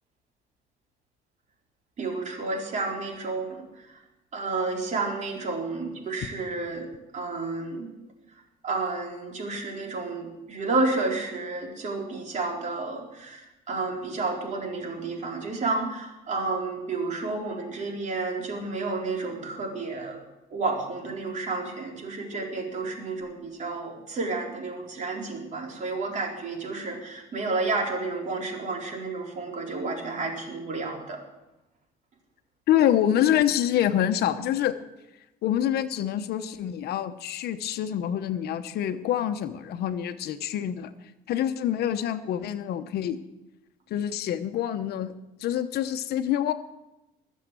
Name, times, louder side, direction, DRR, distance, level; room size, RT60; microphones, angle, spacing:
voice 1, 2.0-3.6 4.3-7.9 8.6-20.2 20.5-31.2, right 3 dB, 45° right, 0 dB, 4.2 m, -31 dB
voice 2, 32.7-34.8 35.4-40.9 41.3-43.2 43.9-45.1 45.4-46.5, left 11 dB, 70° left, 10 dB, 1.0 m, -26 dB
22.0 x 7.3 x 7.6 m, 0.97 s
cardioid pair, 110°, 17 cm